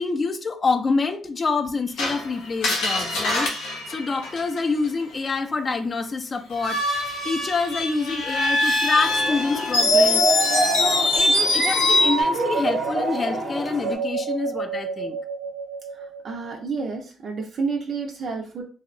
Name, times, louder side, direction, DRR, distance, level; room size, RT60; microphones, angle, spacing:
voice 1, 0.0-3.5 3.9-6.8 7.2-10.3 10.8-15.2, left 4 dB, 35° left, 0.4 m, -26 dB
Screech, 2.0-4.9 6.5-12.2, left 2 dB, 90° left, 0.7 m, -23 dB
sound 1, 9.0-14.0, left 2 dB, 10° left, 0.7 m, -35 dB
sound 2, 9.8-16.5, right 3 dB, 85° right, 0.7 m, -26 dB
voice 2, 15.9-18.6, right 4 dB, 55° right, 0.4 m, -30 dB
2.7 x 2.0 x 2.5 m
cardioid pair, 90°, 0 cm